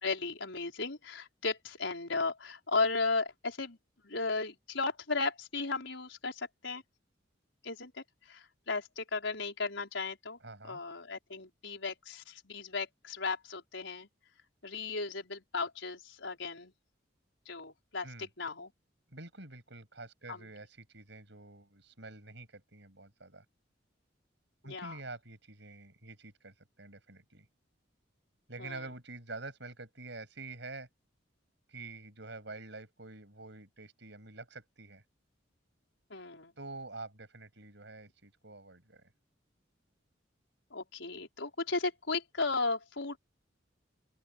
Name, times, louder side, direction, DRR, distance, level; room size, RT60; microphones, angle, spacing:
voice 1, 0.0-3.8 4.0-6.8 7.6-10.4 10.6-14.1 14.6-16.7 17.5-18.7 20.3-20.4 24.6-24.9 28.6-28.8 36.1-36.5 40.7-43.2, left 3 dB, 75° left, 5.2 m, -35 dB
voice 2, 10.4-10.8 18.0-18.3 19.1-23.4 24.6-27.5 28.5-30.9 31.7-35.0 36.6-39.1, right 3 dB, 65° right, 7.5 m, -47 dB
open air
head